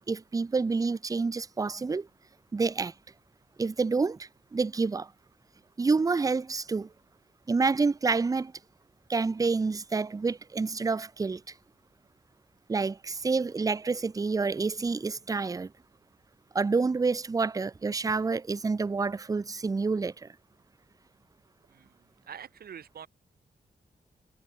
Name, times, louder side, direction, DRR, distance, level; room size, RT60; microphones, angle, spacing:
voice 1, 0.1-2.1 2.5-2.9 3.6-5.1 5.8-6.9 7.5-8.5 9.1-11.4 12.7-15.7 16.5-20.3, right 4 dB, 25° right, 0.5 m, -28 dB
voice 2, 21.7-23.1, right 8 dB, 85° right, 1.7 m, -46 dB
wide cardioid pair, 125°, 15 cm